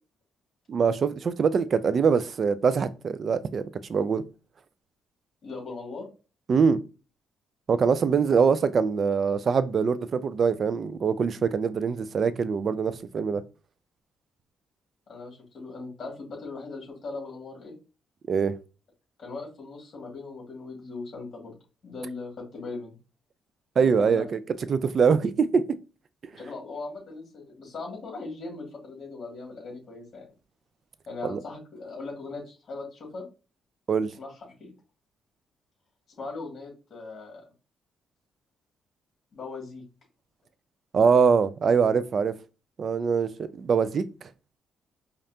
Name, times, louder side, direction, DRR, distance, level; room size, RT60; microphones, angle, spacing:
voice 1, 0.7-4.2 6.5-6.8 7.7-13.4 18.3-18.6 23.8-24.4 24.7-25.6 31.2-31.4 33.9-34.1 40.9-42.3 42.8-44.3, right 6 dB, 50° right, 0.4 m, -23 dB
voice 2, 5.4-6.1 15.1-17.7 19.2-21.5 21.8-22.9 23.8-24.3 26.3-30.3 31.1-33.2 34.2-34.3 34.6-34.7 36.2-37.4 39.3-39.8, left 3 dB, 45° left, 2.2 m, -39 dB
5.3 x 2.5 x 2.8 m
cardioid pair, 90°, 0 cm